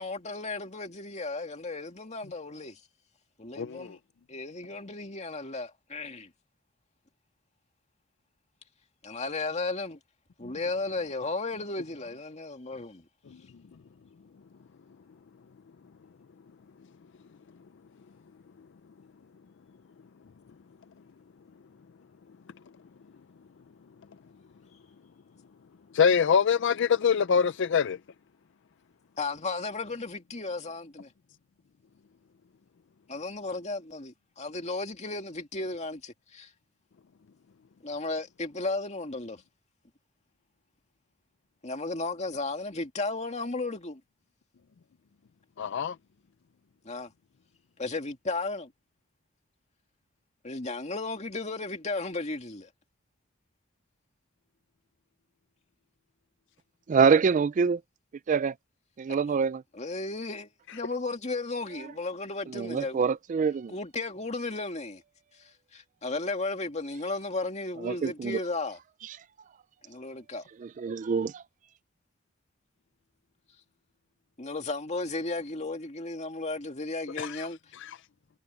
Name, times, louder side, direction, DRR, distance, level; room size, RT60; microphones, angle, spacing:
voice 1, 0.0-2.8 3.4-4.0 4.3-6.3 9.0-10.0 10.4-13.1 29.2-31.1 33.1-36.5 37.8-39.4 41.6-44.0 46.8-47.1 47.8-48.7 50.4-52.7 59.7-63.1 63.7-65.0 65.3-68.8 69.8-70.4 74.4-77.6, left 3 dB, 35° left, 2.2 m, -34 dB
voice 2, 3.6-3.9 25.9-28.0 45.6-46.0 77.2-77.5 77.8-77.9, left 6 dB, 60° left, 0.4 m, -24 dB
voice 3, 56.9-57.8 58.3-58.5 59.0-59.6 62.5-63.7 67.8-68.4 70.6-71.4, right 5 dB, 40° right, 0.3 m, -25 dB
head